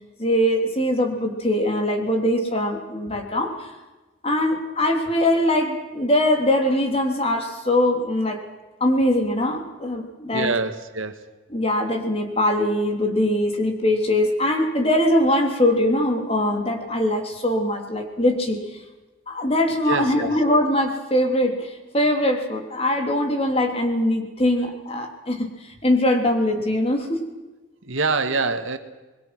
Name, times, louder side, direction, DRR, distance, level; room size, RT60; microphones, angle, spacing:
voice 1, 0.2-3.7 4.2-8.4 8.8-10.5 11.5-18.6 19.3-27.2, left 1 dB, 30° left, 3 dB, 3.4 m, -22 dB
voice 2, 10.3-11.3 19.9-20.3 27.8-28.8, right 3 dB, 80° right, 9 dB, 1.9 m, -25 dB
26.5 x 22.0 x 6.1 m, 1.2 s
head